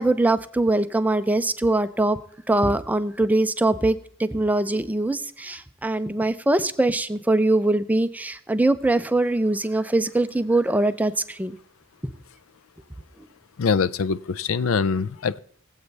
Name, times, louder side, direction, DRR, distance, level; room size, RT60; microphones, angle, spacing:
voice 1, 0.0-2.2 2.5-11.6 12.0-12.1, right 2 dB, 10° right, 0.5 m, -22 dB
voice 2, 13.6-15.4, left 5 dB, 90° left, 0.5 m, -23 dB
21.0 x 8.0 x 3.3 m
head